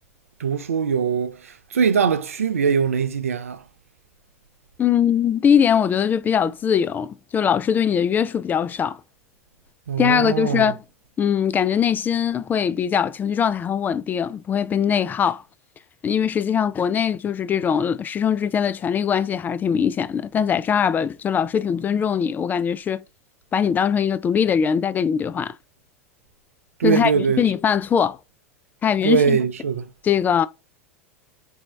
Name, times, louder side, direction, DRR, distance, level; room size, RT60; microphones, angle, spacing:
voice 1, 0.4-3.6 9.9-10.7 26.8-27.4 29.0-29.8, right 6 dB, 85° right, 0.4 m, -22 dB
voice 2, 4.8-9.0 10.0-10.8 11.2-15.4 16.0-23.0 23.5-25.5 26.8-28.2 28.8-29.4 30.0-30.5, left 8 dB, 25° left, 0.3 m, -21 dB
4.2 x 2.7 x 3.2 m
hypercardioid pair, 95°, 7 cm